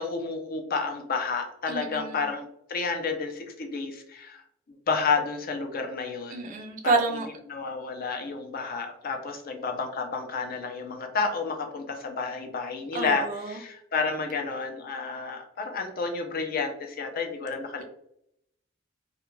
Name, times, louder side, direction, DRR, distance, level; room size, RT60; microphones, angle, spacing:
voice 1, 0.0-4.4 4.9-6.5 6.8-17.8, left 4 dB, 50° left, 4 dB, 0.5 m, -31 dB
voice 2, 1.7-2.2 6.3-7.3 12.9-13.5, right 3 dB, 40° right, 3 dB, 0.3 m, -28 dB
2.3 x 2.1 x 3.0 m, 0.73 s
head